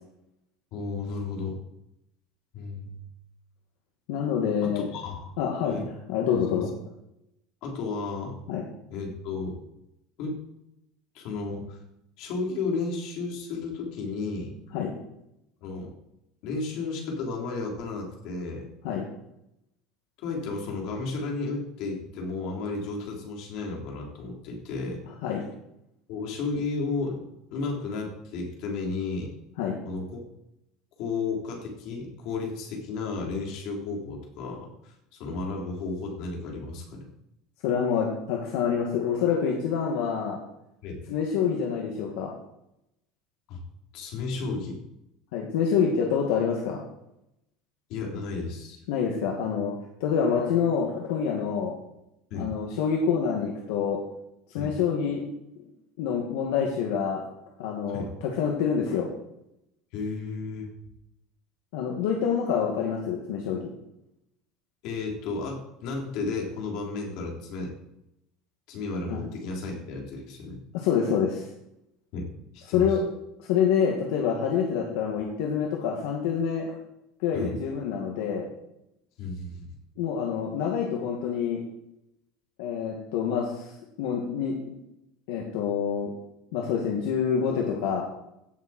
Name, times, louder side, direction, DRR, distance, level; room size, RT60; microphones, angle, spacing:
voice 1, 0.7-1.6 2.5-3.0 4.6-5.4 5.7-5.8 6.5-6.7 7.6-8.3 8.9-9.5 10.2-10.4 11.1-11.8 12.2-14.6 15.6-15.9 16.4-18.7 20.2-25.0 26.1-27.2 27.5-29.3 29.8-30.2 31.0-37.1 40.8-41.0 43.5-43.6 43.9-44.8 47.9-48.8 52.3-52.5 54.5-54.7 57.9-58.1 59.9-60.7 64.8-67.7 68.7-70.6 72.1-72.3 72.5-73.0 77.3-77.6 79.2-79.6, left 3 dB, 50° left, 0 dB, 3.7 m, -33 dB
voice 2, 4.1-4.8 5.4-5.8 6.1-6.7 8.5-8.6 14.7-14.9 18.8-19.1 25.2-25.4 29.6-29.8 37.6-40.4 41.1-42.3 45.3-46.8 48.9-49.7 50.0-51.7 52.3-54.0 54.5-55.2 56.0-57.2 57.6-59.1 61.7-63.6 69.1-69.2 70.7-71.5 72.7-73.0 73.4-76.7 77.2-78.5 80.0-81.6 82.6-83.7 84.0-84.7 85.3-86.1 86.5-88.0, left 7 dB, 70° left, -1 dB, 2.1 m, -27 dB
16.5 x 7.4 x 4.5 m, 0.83 s
cardioid pair, 175°, 0 cm